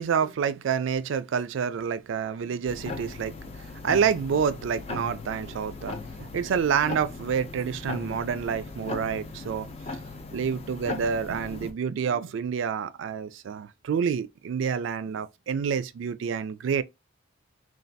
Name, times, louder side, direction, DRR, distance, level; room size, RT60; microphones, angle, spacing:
voice 1, 0.0-9.7 10.3-16.8, right 7 dB, 70° right, 0.3 m, -28 dB
sound 1, 2.7-11.7, left 3 dB, 30° left, 0.4 m, -38 dB
3.2 x 2.2 x 2.6 m
head